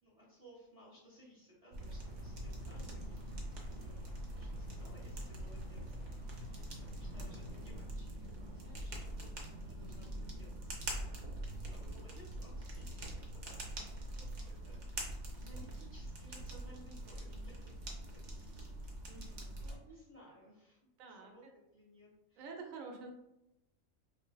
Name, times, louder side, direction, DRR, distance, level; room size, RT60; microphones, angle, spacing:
voice 1, 0.0-13.8 14.2-17.7 18.0-19.3 19.6-20.8 21.1-22.5, equal, 40° right, -5 dB, 0.5 m, -61 dB
sound 1, 1.7-19.8, right 1 dB, 65° right, 0.9 m, -44 dB
sound 2, 1.9-7.6, left 2 dB, 60° left, 0.7 m, -53 dB
voice 2, 19.1-19.5 21.0-21.3 22.4-23.1, right 4 dB, 85° right, 3 dB, 1.0 m, -49 dB
3.2 x 2.5 x 2.2 m, 0.88 s
omnidirectional pair, 1.4 m